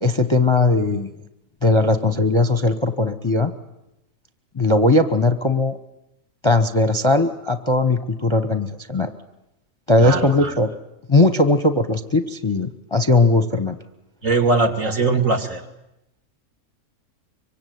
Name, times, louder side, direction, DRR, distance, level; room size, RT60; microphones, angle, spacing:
voice 1, 0.0-1.1 1.6-3.5 4.5-5.8 6.4-9.1 9.9-10.7 11.1-13.8, left 2 dB, 20° left, 10 dB, 1.0 m, -18 dB
voice 2, 10.0-10.6 14.2-15.6, right 3 dB, 55° right, 4 dB, 2.9 m, -20 dB
25.0 x 24.5 x 9.4 m, 0.88 s
omnidirectional pair, 1.7 m